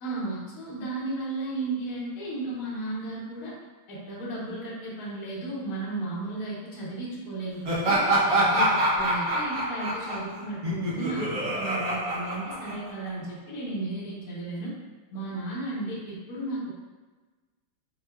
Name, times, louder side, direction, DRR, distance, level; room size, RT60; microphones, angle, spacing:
voice 1, 0.0-3.5 3.9-8.0 8.3-14.7 15.1-16.7, right 2 dB, 60° left, -8 dB, 1.1 m, -34 dB
Laughter, 7.6-13.1, right 1 dB, 55° right, 1.0 m, -26 dB
4.6 x 2.2 x 2.2 m, 1.3 s
omnidirectional pair, 2.3 m